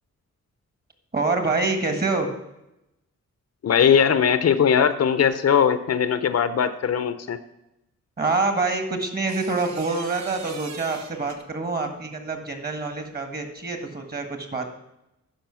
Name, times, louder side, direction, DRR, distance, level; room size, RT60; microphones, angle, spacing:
voice 1, 1.1-2.3 8.2-14.7, right 3 dB, 35° right, 6 dB, 1.7 m, -26 dB
voice 2, 3.6-7.4, left 7 dB, 60° left, 12 dB, 0.7 m, -20 dB
sound 1, 9.0-11.7 13.4-13.7, right 6 dB, 70° right, 1.0 m, -41 dB
10.5 x 5.3 x 6.9 m, 0.89 s
cardioid pair, 85°, 29 cm